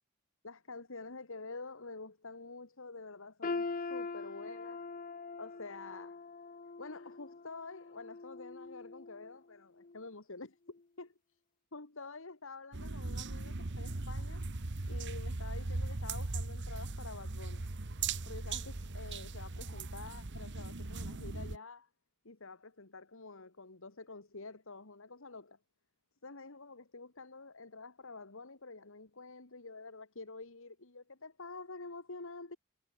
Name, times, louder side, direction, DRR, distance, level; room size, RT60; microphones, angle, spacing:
voice 1, 0.4-4.8 5.4-6.2 6.8-11.2 11.7-14.4 14.9-17.6 18.3-21.9 22.2-25.6 26.2-32.6, left 3 dB, 65° left, 2.1 m, -48 dB
sound 1, 3.4-9.4 9.8-10.0 10.7-10.8, left 3 dB, 40° left, 0.8 m, -42 dB
sound 2, 12.7-21.6, right 3 dB, 55° right, 1.3 m, -39 dB
head